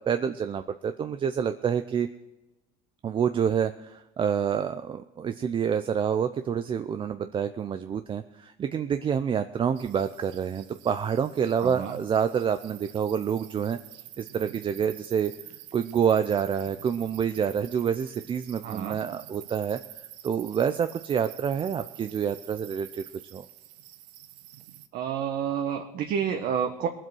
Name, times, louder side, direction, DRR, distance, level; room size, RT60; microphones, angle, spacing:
voice 1, 0.0-2.1 3.0-13.8 14.2-15.3 15.7-23.0 23.3-23.5, right 7 dB, 30° right, 9 dB, 0.6 m, -27 dB
sound 1, 9.8-24.9, right 13 dB, 85° right, 1.0 m, -47 dB
voice 2, 11.6-12.0 18.6-19.0 24.9-26.9, right 8 dB, 55° right, 5 dB, 1.2 m, -29 dB
20.0 x 7.7 x 6.2 m, 1.0 s
cardioid pair, 120°, 19 cm